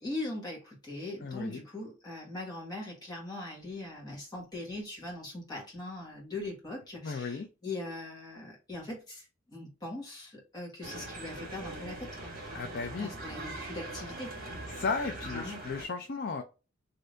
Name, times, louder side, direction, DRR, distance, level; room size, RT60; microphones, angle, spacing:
voice 1, 0.0-9.2 9.5-12.3 13.0-14.4 15.3-15.6, left 2 dB, 20° left, 1.3 m, -40 dB
voice 2, 1.2-1.6 7.0-7.5 12.5-13.1 14.7-16.4, left 4 dB, 50° left, 0.5 m, -35 dB
sound 1, 10.8-15.9, right 2 dB, 45° right, 1.7 m, -41 dB
3.3 x 2.7 x 2.5 m
head